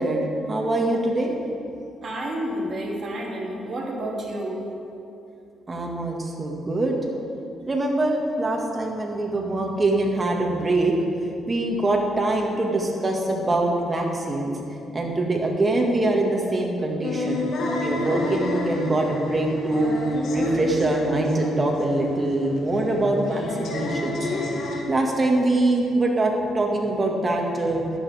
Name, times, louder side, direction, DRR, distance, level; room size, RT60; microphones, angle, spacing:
voice 1, 0.0-1.3 5.7-7.0 7.7-10.9 11.5-14.5 14.9-17.4 17.8-20.0 20.3-24.3 24.9-27.9, right 2 dB, 25° right, -1 dB, 2.0 m, -23 dB
voice 2, 2.0-4.6, right 1 dB, 45° right, -3 dB, 2.7 m, -30 dB
sound 1, 17.0-24.8, left 2 dB, 70° left, 1.8 m, -30 dB
14.5 x 10.5 x 3.6 m, 2.7 s
cardioid pair, 90°, 0 cm